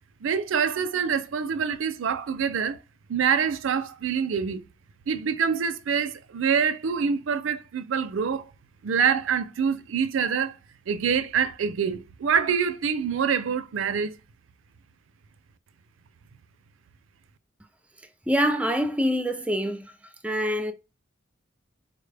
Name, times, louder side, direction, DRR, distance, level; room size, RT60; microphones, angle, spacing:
voice 1, 0.2-2.8 3.1-4.6 5.1-8.5 8.8-10.6 10.9-14.2, right 6 dB, 70° right, 0.4 m, -25 dB
voice 2, 18.3-19.9 20.2-20.7, equal, 5° right, 0.4 m, -25 dB
4.1 x 2.1 x 3.3 m
head